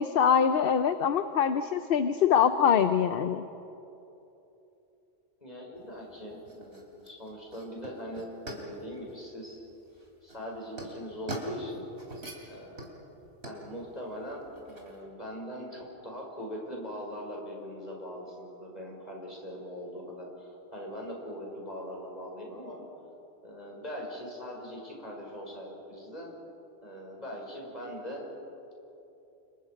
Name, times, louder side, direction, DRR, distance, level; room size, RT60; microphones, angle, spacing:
voice 1, 0.0-3.4, left 8 dB, 60° left, 10 dB, 0.9 m, -24 dB
voice 2, 5.4-9.6 10.2-11.9 12.5-12.9 13.4-22.8 23.4-26.3 26.8-28.3, equal, 40° left, -2 dB, 5.8 m, -41 dB
sound 1, 5.7-15.0, right 1 dB, 75° right, 3.6 m, -44 dB
30.0 x 26.0 x 5.2 m, 3.0 s
omnidirectional pair, 1.1 m